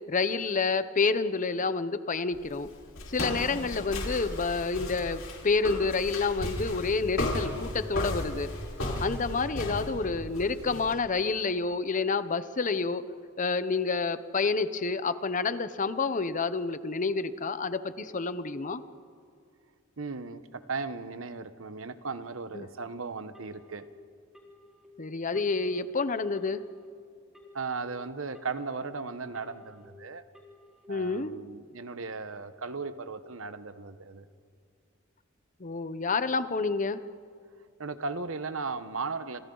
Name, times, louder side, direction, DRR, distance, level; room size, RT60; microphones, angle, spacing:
voice 1, 0.1-2.7 3.1-8.5 9.0-13.0 13.4-18.8 22.5-22.7 25.0-26.6 30.9-31.3 35.6-37.0, left 4 dB, 40° left, 13 dB, 0.8 m, -29 dB
Walk footsteps, 2.3-10.9, left 1 dB, 65° left, 4.7 m, -35 dB
voice 2, 20.0-23.9 27.5-30.2 30.9-34.2 37.8-39.4, right 4 dB, 70° right, 11 dB, 1.0 m, -36 dB
Telephone, 23.3-23.9 24.3-24.9 25.3-25.9 26.3-26.9 27.3-27.9 28.3-28.9 29.3-29.9 30.3-30.9, left 1 dB, ahead, 4.2 m, -56 dB
28.0 x 27.5 x 3.9 m, 2.3 s
head